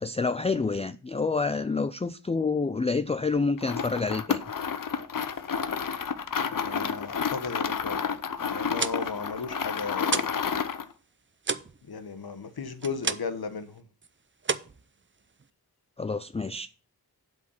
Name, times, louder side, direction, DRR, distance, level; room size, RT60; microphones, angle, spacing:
voice 1, 0.0-4.4 16.0-16.7, left 4 dB, 15° left, 0.4 m, -28 dB
sound 1, 3.6-10.9, left 6 dB, 60° left, 0.8 m, -30 dB
voice 2, 6.4-8.1 8.5-10.3 11.9-13.8, left 5 dB, 75° left, 1.2 m, -35 dB
sound 2, 8.6-10.5 10.8-13.5 13.8-14.1 14.4-15.5, right 5 dB, 30° right, 0.6 m, -33 dB
8.0 x 4.8 x 7.0 m
wide cardioid pair, 55°, 38 cm